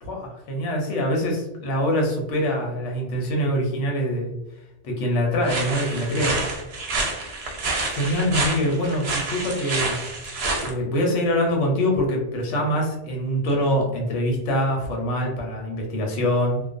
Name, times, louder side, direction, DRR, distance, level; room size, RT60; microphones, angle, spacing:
voice 1, 0.0-4.3 4.8-6.4 7.9-10.0 10.6-16.6, equal, 80° left, 0 dB, 1.0 m, -24 dB
sound 1, 5.4-10.7, right 2 dB, 65° right, 0.8 m, -28 dB
2.4 x 2.1 x 2.4 m, 0.91 s
omnidirectional pair, 1.2 m